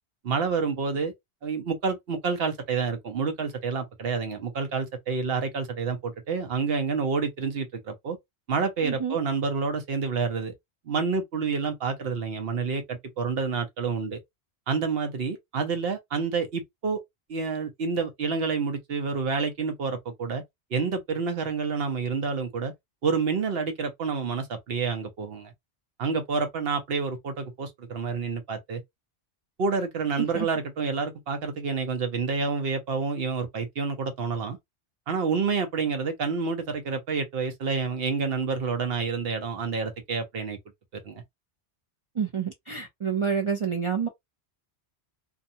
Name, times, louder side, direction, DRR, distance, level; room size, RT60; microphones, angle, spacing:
voice 1, 0.2-1.1 1.4-8.2 8.5-10.5 10.9-14.2 14.7-17.0 17.3-20.4 20.7-22.7 23.0-25.5 26.0-28.8 29.6-34.6 35.1-40.6 41.0-41.2, right 5 dB, 65° right, 0.9 m, -28 dB
voice 2, 8.8-9.2 30.2-30.5 42.2-44.1, right 6 dB, 50° right, 0.4 m, -28 dB
2.5 x 2.2 x 2.6 m
omnidirectional pair, 1.1 m